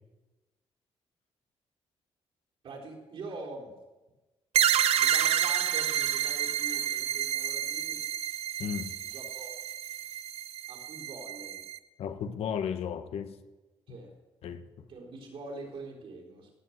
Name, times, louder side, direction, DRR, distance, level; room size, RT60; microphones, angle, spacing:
voice 1, 2.6-3.7 4.9-8.1 9.0-9.5 10.7-11.6 13.9-14.1 14.9-16.5, right 3 dB, 60° right, -1 dB, 3.8 m, -44 dB
sound 1, 4.5-11.8, right 10 dB, 85° right, 0.7 m, -29 dB
voice 2, 8.6-8.9 12.0-13.4 13.9-14.0 14.4-14.8, left 8 dB, 75° left, 9 dB, 1.1 m, -34 dB
17.5 x 7.7 x 7.9 m, 1.1 s
wide cardioid pair, 175°, 10 cm